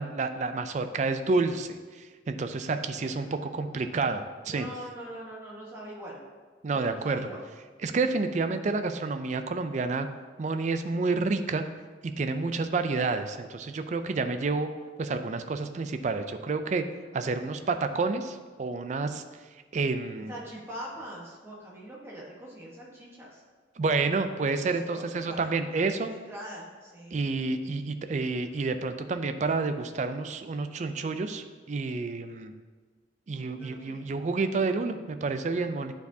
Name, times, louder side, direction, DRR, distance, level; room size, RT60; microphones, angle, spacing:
voice 1, 0.0-4.7 6.6-7.2 7.8-10.1 10.4-11.6 12.0-14.7 15.0-16.8 17.1-19.2 19.7-20.3 23.8-26.2 27.1-32.5 33.3-35.9, right 3 dB, 40° right, 9 dB, 0.3 m, -29 dB
voice 2, 3.0-3.9 4.4-6.2 6.7-7.4 20.1-23.4 24.4-27.4 33.3-34.2, equal, 15° right, -4 dB, 1.1 m, -43 dB
9.1 x 4.6 x 2.7 m, 1.4 s
head